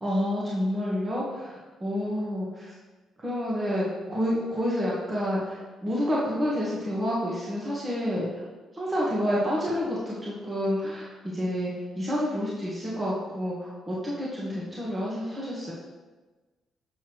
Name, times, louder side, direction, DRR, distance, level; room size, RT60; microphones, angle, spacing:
voice 1, 0.0-2.8 3.2-8.4 8.7-15.7, equal, 25° right, -6 dB, 1.9 m, -29 dB
7.1 x 5.8 x 4.7 m, 1.2 s
cardioid pair, 90°, 0 cm